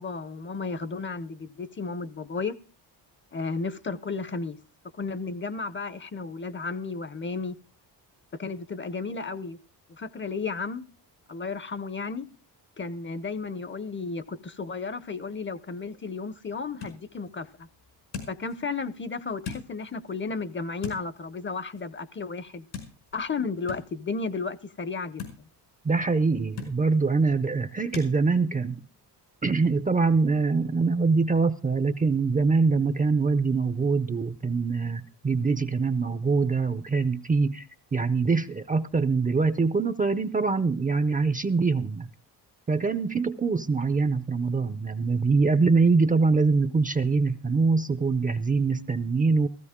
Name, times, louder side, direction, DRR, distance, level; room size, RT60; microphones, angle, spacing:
voice 1, 0.0-2.6 3.3-4.6 5.0-7.6 8.4-9.6 9.9-10.8 11.3-12.3 12.8-17.7 18.3-22.6 23.1-25.5, left 4 dB, 30° left, 0.7 m, -33 dB
sound 1, 15.8-28.1, left 6 dB, 85° left, 5.4 m, -45 dB
voice 2, 25.8-28.8 29.4-37.7 37.9-42.1 42.7-49.5, right 4 dB, 20° right, 0.6 m, -24 dB
15.5 x 15.0 x 3.6 m
cardioid pair, 125°, 41 cm